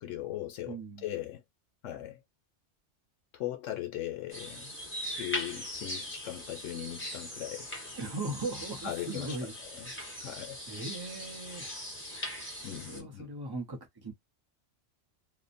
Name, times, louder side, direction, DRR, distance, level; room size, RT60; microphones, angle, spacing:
voice 1, 0.0-1.4 1.8-2.2 3.3-4.8 5.1-7.7 8.8-9.9 10.2-10.6 12.6-13.3, left 13 dB, 85° left, 1.0 m, -39 dB
voice 2, 0.7-1.0 8.0-9.5 10.7-11.7 12.7-14.1, right 2 dB, 25° right, 0.7 m, -38 dB
sound 1, 4.3-13.0, left 1 dB, 10° left, 1.1 m, -40 dB
2.8 x 2.1 x 2.5 m
omnidirectional pair, 1.2 m